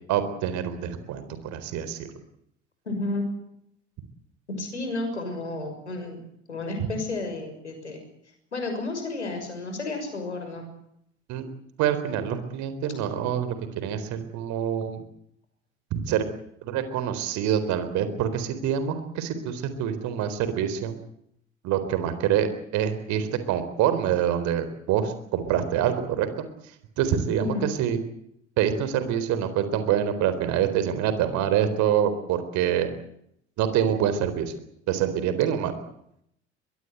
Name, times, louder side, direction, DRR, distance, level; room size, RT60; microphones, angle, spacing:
voice 1, 0.1-2.1 11.3-11.5 11.8-15.0 15.9-16.2 16.6-21.0 21.6-26.3 26.6-28.0 28.6-32.9 33.6-34.5 34.9-35.8, right 9 dB, 55° right, 11 dB, 4.1 m, -26 dB
voice 2, 2.8-3.2 4.6-6.2 6.5-8.0 8.5-10.6 27.4-27.6, left 2 dB, 85° left, 5 dB, 6.3 m, -31 dB
23.0 x 22.0 x 8.0 m, 0.74 s
figure-of-eight pair, 65°, 34 cm